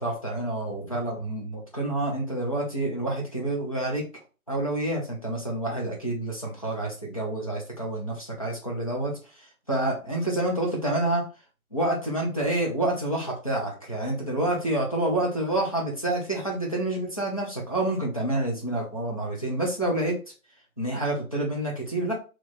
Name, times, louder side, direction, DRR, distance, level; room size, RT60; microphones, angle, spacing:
voice 1, 0.0-4.0 4.5-11.2 11.7-20.2 20.8-22.2, right 1 dB, 25° left, -3 dB, 0.9 m, -28 dB
3.3 x 3.1 x 4.2 m, 0.34 s
figure-of-eight pair, 175°, 43 cm